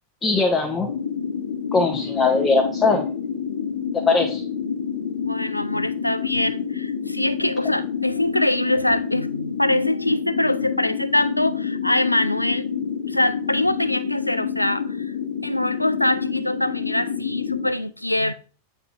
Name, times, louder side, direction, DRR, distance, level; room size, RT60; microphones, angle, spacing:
voice 1, 0.2-0.9 1.7-3.0 3.9-4.4, left 3 dB, 20° left, 0.8 m, -20 dB
sound 1, 0.9-17.7, left 7 dB, 65° left, 1.0 m, -28 dB
voice 2, 5.2-12.7 13.1-15.1 15.4-18.3, left 1 dB, 85° left, 0.3 m, -23 dB
8.0 x 3.7 x 3.6 m
figure-of-eight pair, 90°, 0 cm